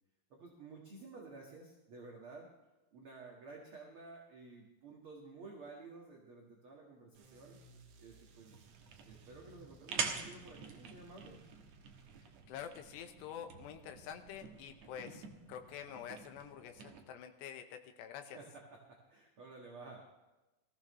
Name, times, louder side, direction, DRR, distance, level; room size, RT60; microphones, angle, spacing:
voice 1, 0.3-2.5 2.9-7.6 8.0-8.6 9.1-11.4 18.3-20.0, right 3 dB, 50° right, -1 dB, 1.7 m, -53 dB
sound 1, 7.1-12.5, right 5 dB, 85° right, 3.8 m, -61 dB
sound 2, 8.5-17.0, right 6 dB, 65° right, 1.7 m, -46 dB
voice 2, 12.5-18.4, left 8 dB, 90° left, 6 dB, 3.2 m, -47 dB
21.0 x 14.5 x 3.2 m, 1.0 s
omnidirectional pair, 4.8 m